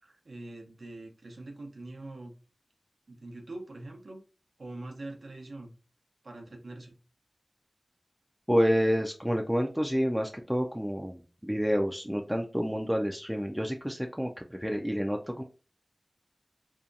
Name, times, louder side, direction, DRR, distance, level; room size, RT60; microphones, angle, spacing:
voice 1, 0.0-2.3 3.1-4.2 4.6-5.7 6.2-7.0, right 2 dB, 90° right, 2 dB, 0.6 m, -43 dB
voice 2, 8.5-15.4, equal, 5° right, 2 dB, 0.3 m, -29 dB
2.7 x 2.2 x 2.4 m, 0.34 s
wide cardioid pair, 40°, 0 cm